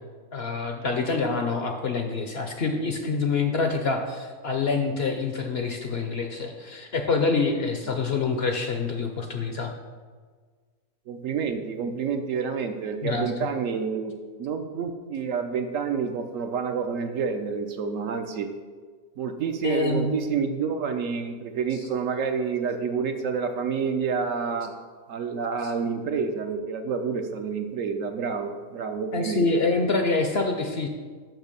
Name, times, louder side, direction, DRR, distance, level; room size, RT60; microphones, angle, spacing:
voice 1, 0.3-9.7 13.0-13.5 19.6-20.2 25.6-25.7 29.1-30.9, left 4 dB, 55° left, 4 dB, 0.7 m, -26 dB
voice 2, 11.1-14.1 14.4-18.5 19.2-24.7 25.1-29.5, right 6 dB, 65° right, 6 dB, 1.0 m, -28 dB
6.2 x 5.8 x 6.7 m, 1.5 s
omnidirectional pair, 1.6 m